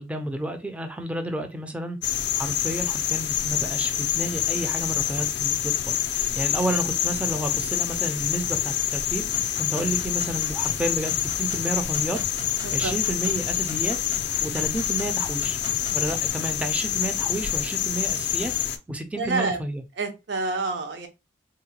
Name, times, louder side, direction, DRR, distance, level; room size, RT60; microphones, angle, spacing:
voice 1, 0.0-2.0 2.3-12.2 12.7-14.0 14.4-15.6 15.9-18.5 18.9-19.8, right 1 dB, 5° right, 6 dB, 0.4 m, -31 dB
sound 1, 2.0-18.8, left 11 dB, 60° left, 0.4 m, -27 dB
sound 2, 9.3-16.3, equal, 90° right, 1.2 m, -41 dB
voice 2, 19.2-19.6 20.0-21.1, right 3 dB, 65° right, 6 dB, 0.7 m, -28 dB
3.7 x 2.1 x 2.8 m, 0.24 s
head